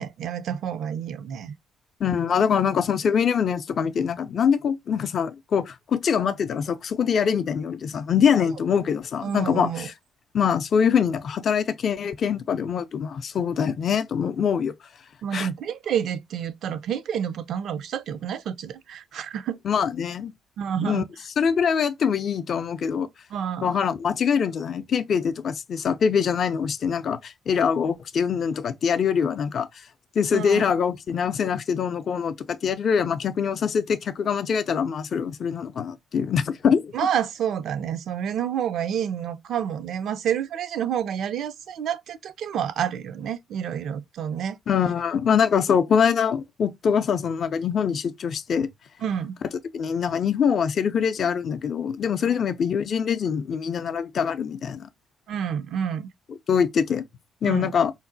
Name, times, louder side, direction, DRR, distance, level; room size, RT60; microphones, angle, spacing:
voice 1, 0.0-1.5 9.2-9.9 15.2-19.6 20.6-21.1 23.3-23.8 30.3-30.8 36.9-44.6 49.0-49.4 52.3-52.4 55.3-56.1 57.4-57.7, right 8 dB, 65° right, 0.4 m, -29 dB
voice 2, 2.0-9.9 10.3-14.7 15.3-15.5 19.6-20.3 20.8-21.0 21.4-23.1 23.6-29.7 30.2-36.9 44.7-48.7 49.7-54.9 56.5-57.0 57.4-57.9, left 7 dB, 55° left, 0.4 m, -24 dB
3.8 x 2.1 x 2.6 m
hypercardioid pair, 55°, 0 cm